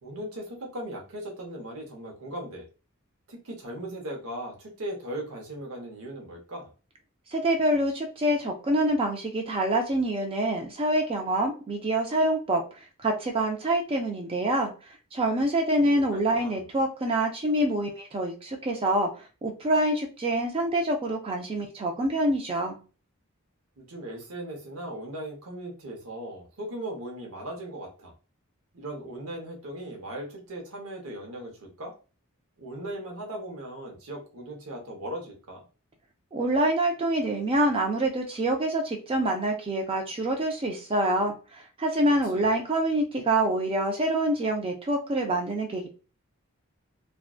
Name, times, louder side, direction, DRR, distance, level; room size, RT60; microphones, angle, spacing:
voice 1, 0.0-2.7 3.3-6.7 15.8-16.6 23.8-28.1 28.7-31.9 32.6-35.6 42.3-42.5, right 1 dB, 85° right, 1 dB, 0.8 m, -38 dB
voice 2, 7.3-12.6 13.0-14.7 15.1-19.1 19.4-22.8 36.3-45.9, right 1 dB, 25° right, 3 dB, 0.3 m, -26 dB
2.5 x 2.1 x 2.3 m, 0.34 s
head